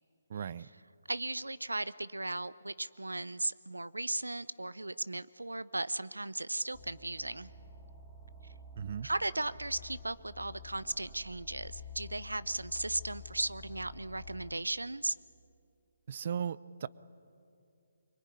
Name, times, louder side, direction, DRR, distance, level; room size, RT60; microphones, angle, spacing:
voice 1, 0.3-0.7 8.8-9.1 16.1-16.9, right 8 dB, 45° right, 19 dB, 0.7 m, -37 dB
voice 2, 1.1-7.5 9.0-15.2, right 2 dB, 90° right, 17 dB, 0.7 m, -36 dB
sound 1, 6.7-14.5, left 3 dB, ahead, 3.2 m, -50 dB
24.0 x 23.0 x 9.9 m, 2.5 s
figure-of-eight pair, 145°, 0 cm